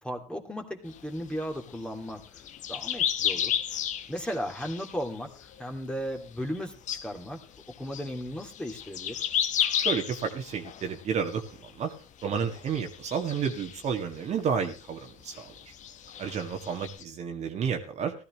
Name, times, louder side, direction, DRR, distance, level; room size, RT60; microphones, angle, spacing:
voice 1, 0.0-2.2 2.7-3.5 4.1-6.7 7.0-7.4 7.8-9.2, equal, 5° left, 2 dB, 2.6 m, -35 dB
sound 1, 0.9-5.8 6.0-6.6 6.9-11.9 12.2-14.3 14.6-17.0, left 9 dB, 40° left, 1.2 m, -33 dB
voice 2, 9.8-11.9 12.2-15.3 16.2-18.1, right 7 dB, 40° right, 4 dB, 2.0 m, -31 dB
16.0 x 13.0 x 3.1 m, 0.36 s
supercardioid pair, 100°, 18 cm